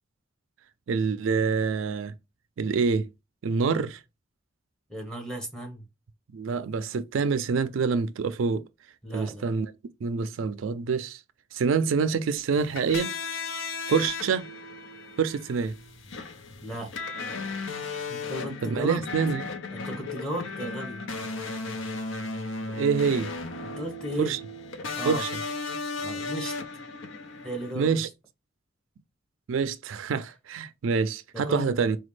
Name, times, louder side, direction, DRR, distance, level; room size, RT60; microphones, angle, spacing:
voice 1, 0.9-2.1 2.6-3.1 3.4-4.0 6.3-8.6 9.1-9.7 10.0-11.2 11.5-13.2 13.9-14.5 15.2-15.7 18.6-19.4 22.7-23.3 24.2-24.4 25.0-25.3 27.8-28.1 29.5-32.0, right 5 dB, 90° right, 0.4 m, -26 dB
voice 2, 4.9-5.8 9.0-9.4 16.6-17.1 18.1-19.0 19.7-21.0 23.6-24.3 24.9-25.2 26.0-26.5 27.4-28.1 31.3-31.7, equal, 5° left, 1.1 m, -35 dB
sound 1, 12.5-27.7, left 3 dB, 85° left, 0.7 m, -35 dB
4.1 x 2.3 x 3.1 m
head